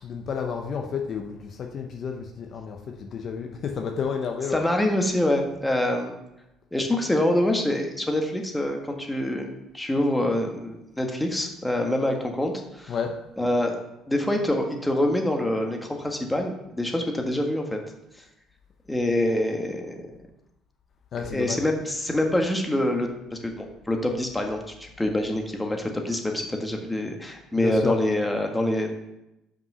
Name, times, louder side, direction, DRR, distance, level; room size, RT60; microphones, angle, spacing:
voice 1, 0.0-4.7 12.9-13.2 21.1-21.7 27.6-28.0, left 6 dB, 55° left, 3 dB, 0.8 m, -31 dB
voice 2, 4.5-6.1 6.7-12.9 13.4-13.7 14.1-17.8 18.9-20.1 21.3-28.9, left 1 dB, 10° left, 2 dB, 1.5 m, -25 dB
5.6 x 5.3 x 5.5 m, 0.89 s
hypercardioid pair, 65°, 0 cm